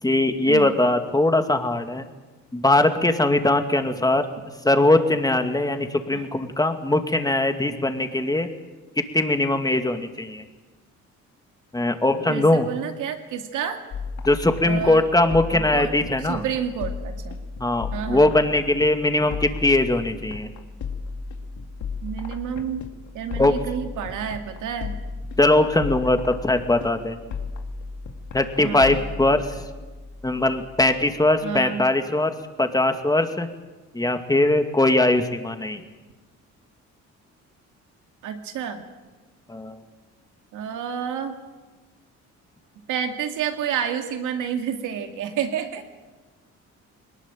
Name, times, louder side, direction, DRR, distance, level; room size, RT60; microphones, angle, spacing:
voice 1, 0.0-2.0 2.5-4.2 4.6-8.5 9.1-10.4 11.7-12.7 14.2-16.4 17.6-20.5 23.4-23.5 25.4-27.2 28.3-29.5 30.2-33.5 33.9-35.8 39.5-39.8, left 2 dB, 10° left, 7 dB, 2.3 m, -21 dB
voice 2, 12.3-13.8 14.6-15.1 15.5-15.9 16.2-17.4 17.9-18.3 22.0-22.8 23.1-24.9 28.6-28.9 31.4-31.8 38.2-38.8 40.5-41.3 42.9-45.8, right 8 dB, 85° right, 5 dB, 2.4 m, -29 dB
sound 1, 13.9-31.5, left 4 dB, 75° left, 2.3 m, -35 dB
21.5 x 19.5 x 9.0 m, 1.3 s
cardioid pair, 90°, 30 cm